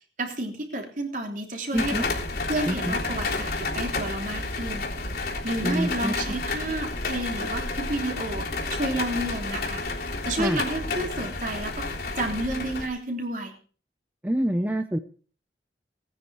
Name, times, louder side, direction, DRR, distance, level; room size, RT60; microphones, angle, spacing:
voice 1, 0.2-2.1 2.5-4.9 5.4-9.8 10.2-13.5, right 1 dB, 45° right, 3 dB, 3.2 m, -31 dB
sound 1, 1.7-12.9, left 3 dB, 60° left, 3.5 m, -30 dB
voice 2, 1.7-2.0 2.7-2.9 5.6-6.1 10.4-10.6 14.2-15.0, equal, 10° right, 8 dB, 0.7 m, -26 dB
18.5 x 9.8 x 4.8 m, 0.42 s
head